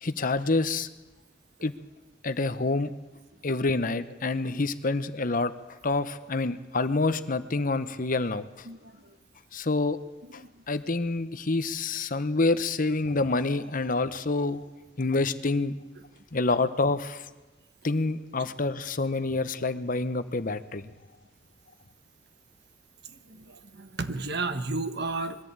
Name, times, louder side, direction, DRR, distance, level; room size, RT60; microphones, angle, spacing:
voice 1, 0.0-0.9 1.6-1.7 2.2-2.9 3.4-5.5 5.8-8.5 9.5-10.0 10.3-14.6 15.0-15.8 16.3-17.3 17.8-20.9, left 3 dB, 50° left, 12 dB, 1.0 m, -27 dB
voice 2, 23.3-25.4, right 3 dB, 60° right, 10 dB, 1.3 m, -32 dB
21.5 x 14.5 x 8.8 m, 1.1 s
head